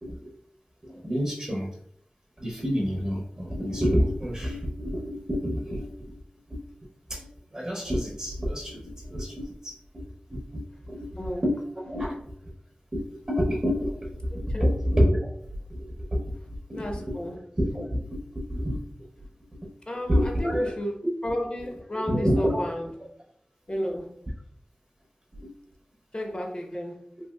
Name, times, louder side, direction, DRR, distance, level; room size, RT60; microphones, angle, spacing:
voice 1, 0.0-0.4 0.8-1.7 2.4-6.2 6.5-6.6 7.1-10.0 10.3-11.2 11.4-12.5 12.9-15.3 15.7-18.8 19.2-19.3 19.6-19.7 20.1-20.7 21.6-21.7 21.9-22.6 25.3-25.5, equal, 30° right, -2 dB, 0.6 m, -28 dB
voice 2, 14.3-14.7 16.7-17.4 19.9-20.9 21.2-22.9 23.7-24.1 26.1-27.0, equal, 35° left, 2 dB, 0.6 m, -32 dB
2.9 x 2.6 x 2.2 m, 0.64 s
wide cardioid pair, 65°, 3 cm